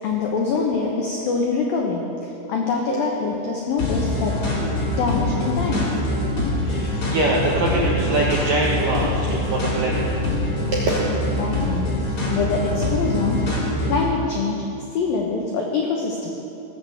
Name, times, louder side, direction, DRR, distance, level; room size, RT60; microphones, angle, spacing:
voice 1, 0.0-5.9 6.7-6.8 11.4-11.9 12.3-13.4 13.9-14.6 14.9-16.3, left 4 dB, 85° left, 0 dB, 2.0 m, -24 dB
sound 1, 3.8-14.1, left 1 dB, 30° left, 3.5 m, -24 dB
voice 2, 6.6-10.0 10.7-10.9, right 2 dB, 75° right, -4 dB, 2.0 m, -23 dB
19.0 x 8.1 x 8.0 m, 2.8 s
omnidirectional pair, 5.9 m